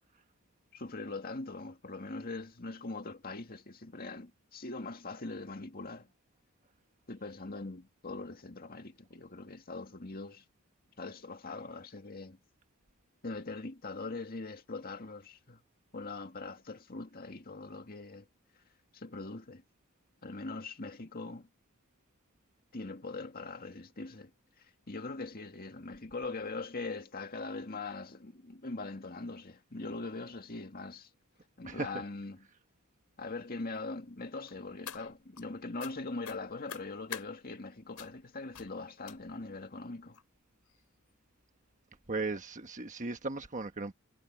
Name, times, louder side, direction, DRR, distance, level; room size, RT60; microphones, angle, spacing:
voice 1, 0.7-6.1 7.1-10.4 11.0-12.4 13.2-15.6 15.9-18.3 18.9-19.6 20.2-21.5 22.7-24.3 24.9-31.1 31.6-32.5 33.2-40.2, left 3 dB, 40° left, 2.0 m, -41 dB
sound 1, 34.5-35.4 35.8-35.9 36.2-37.3 38.0-38.2 38.5-38.7 39.0-39.5 40.1-40.2 40.7-40.8 41.1-41.2, left 8 dB, 85° left, 3.9 m, -45 dB
voice 2, 42.1-43.9, right 3 dB, 35° right, 1.3 m, -36 dB
head